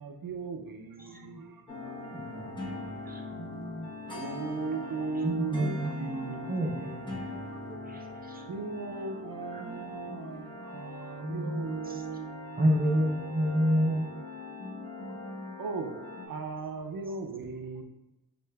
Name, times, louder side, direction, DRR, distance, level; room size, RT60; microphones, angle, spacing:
voice 1, 0.0-2.8 4.1-7.0 7.5-7.6 8.0-8.2 8.5-13.1 15.6-16.0 16.3-17.8, right 4 dB, 80° right, 0.5 m, -38 dB
voice 2, 1.1-1.4 3.3-3.9 14.6-15.6 16.1-16.4, equal, 55° left, 0.7 m, -44 dB
sound 1, 1.7-16.3, left 2 dB, 15° left, 0.9 m, -42 dB
voice 3, 2.1-2.5 3.1-3.2 5.2-7.1 7.7-8.0 8.3-8.4 9.5-10.8 11.2-12.0 12.6-14.0, equal, 25° right, 0.6 m, -30 dB
6.4 x 2.4 x 2.2 m
cardioid pair, 40°, 34 cm